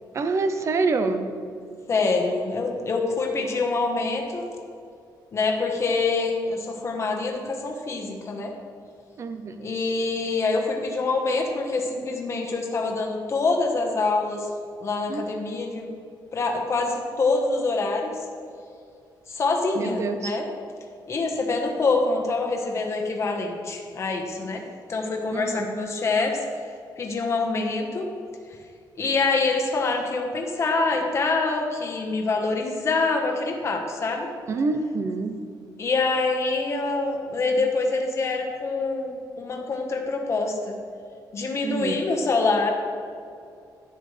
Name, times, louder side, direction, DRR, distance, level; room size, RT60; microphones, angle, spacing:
voice 1, 0.1-1.3 9.2-9.7 15.1-15.3 19.8-20.4 25.3-25.7 34.5-35.4 41.6-42.0, right 3 dB, 40° right, 9 dB, 0.6 m, -26 dB
voice 2, 1.9-4.5 5.3-8.5 9.6-14.5 14.8-15.9 16.3-18.1 19.3-20.5 21.1-24.6 24.9-26.4 27.0-28.1 28.9-34.3 35.8-40.8 41.3-42.7, left 3 dB, 35° left, 1 dB, 1.2 m, -25 dB
11.5 x 9.0 x 3.3 m, 2.4 s
cardioid pair, 155°, 8 cm